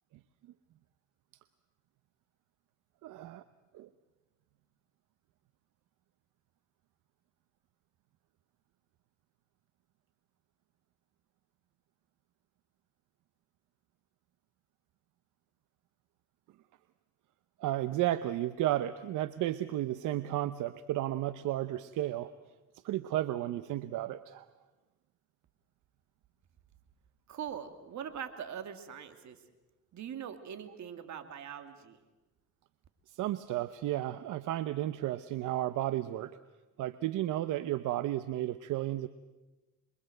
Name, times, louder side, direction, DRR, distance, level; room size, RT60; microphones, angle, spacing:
voice 1, 3.0-3.4 3.7-3.9 17.6-22.3 22.8-24.5 33.1-36.4 36.8-39.1, right 14 dB, 85° right, 13 dB, 0.8 m, -33 dB
voice 2, 27.3-29.4 29.9-32.0, right 8 dB, 70° right, 8 dB, 2.7 m, -42 dB
27.0 x 23.0 x 8.0 m, 1.1 s
cardioid pair, 90°, 30 cm